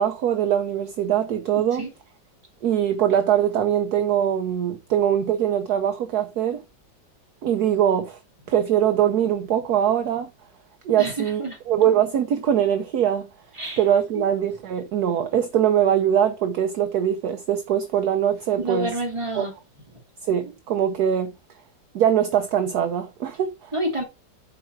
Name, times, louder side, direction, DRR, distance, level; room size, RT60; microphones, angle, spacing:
voice 1, 0.0-1.8 2.6-6.6 7.4-8.2 8.5-10.3 10.8-13.3 13.8-18.9 19.3-19.5 20.3-21.3 21.9-23.7, right 9 dB, 65° right, 1.2 m, -22 dB
voice 2, 11.0-11.6 13.6-13.8 14.1-14.2 18.6-19.5 23.7-24.0, right 1 dB, 15° right, 2.8 m, -28 dB
7.7 x 4.5 x 4.6 m
omnidirectional pair, 2.0 m